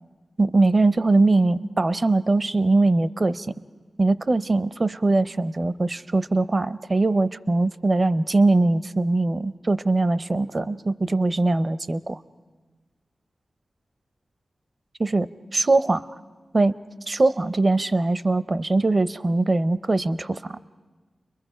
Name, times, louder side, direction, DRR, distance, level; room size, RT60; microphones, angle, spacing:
voice 1, 0.4-3.5 4.0-12.2 15.0-16.1 16.5-16.7 17.1-20.6, right 2 dB, 40° right, 15 dB, 0.6 m, -21 dB
30.0 x 22.5 x 5.0 m, 1.4 s
wide cardioid pair, 70°, 0 cm